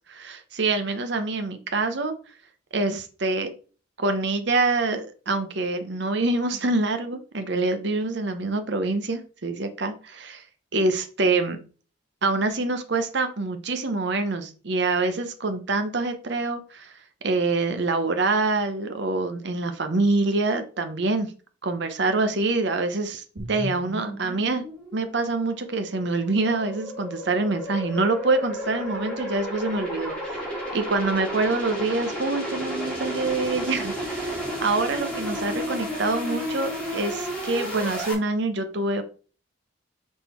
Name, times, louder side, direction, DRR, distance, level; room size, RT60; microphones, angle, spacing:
voice 1, 0.1-2.1 2.7-3.5 4.0-10.4 10.7-11.6 12.2-16.9 17.2-21.3 21.6-24.6 24.9-39.0, right 3 dB, 60° right, 8 dB, 0.8 m, -26 dB
sound 1, 23.4-38.1, equal, 5° left, 2.3 m, -32 dB
6.2 x 3.7 x 4.4 m, 0.37 s
head